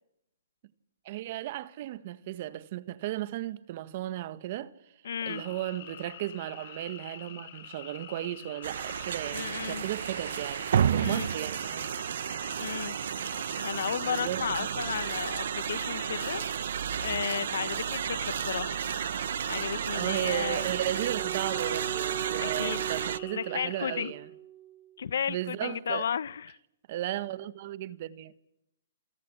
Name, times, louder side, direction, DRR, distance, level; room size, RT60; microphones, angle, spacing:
voice 1, 1.0-4.7 5.2-10.7 10.9-11.9 14.0-14.7 19.9-24.3 25.3-26.1 26.9-28.4, right 13 dB, 40° right, 1.5 m, -35 dB
voice 2, 5.0-5.4 9.3-9.8 11.0-11.3 12.6-13.0 13.6-16.5 17.0-18.7 19.5-20.6 22.4-22.8 23.3-24.1 25.0-26.6, left 8 dB, 70° left, 0.9 m, -33 dB
sound 1, 5.3-24.1, left 10 dB, 55° left, 3.9 m, -46 dB
sound 2, 8.6-23.2, right 9 dB, 65° right, 0.9 m, -32 dB
Wind instrument woodwind instrument, 20.0-25.0, right 12 dB, 20° right, 1.1 m, -39 dB
28.5 x 23.5 x 7.4 m
hypercardioid pair, 155°, 0 cm